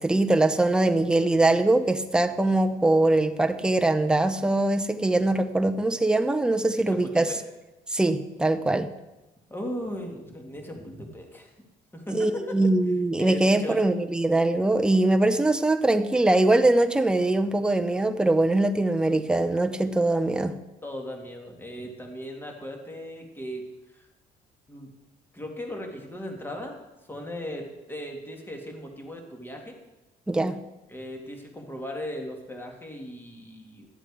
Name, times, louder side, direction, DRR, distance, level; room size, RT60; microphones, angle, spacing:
voice 1, 0.0-7.3 7.9-8.9 12.1-20.5 30.3-30.6, right 2 dB, 5° right, 7 dB, 0.7 m, -22 dB
voice 2, 6.8-7.4 9.5-11.5 11.9-12.6 13.2-13.8 20.8-24.0 24.7-24.9 25.3-26.8 27.1-29.8 30.9-33.9, equal, 10° left, 2 dB, 2.1 m, -37 dB
11.5 x 7.5 x 4.9 m, 1.0 s
cardioid pair, 110°, 17 cm